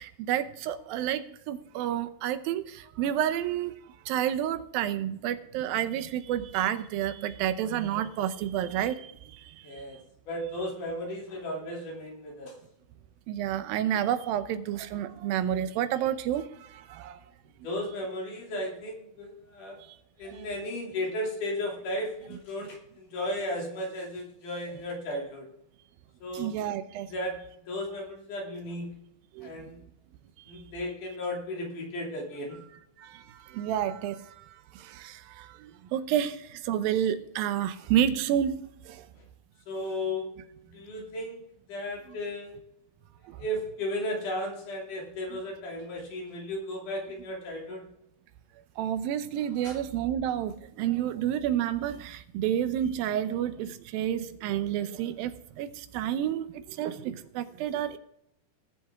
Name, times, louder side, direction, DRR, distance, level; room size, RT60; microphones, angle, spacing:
voice 1, 0.0-9.8 13.3-17.2 20.2-20.5 26.3-27.1 29.3-29.7 30.5-30.6 33.0-39.1 43.3-43.4 45.3-45.4 48.8-58.0, right 10 dB, 85° right, 2.6 m, -30 dB
voice 2, 9.6-10.0 10.3-12.5 17.6-19.8 20.2-25.5 26.2-26.5 27.0-27.4 27.7-28.9 29.4-29.8 30.5-32.6 39.7-40.3 40.6-41.4 41.7-42.5 43.4-47.9 49.6-49.8, left 1 dB, 65° left, 4.3 m, -35 dB
18.5 x 7.5 x 3.6 m
omnidirectional pair, 4.1 m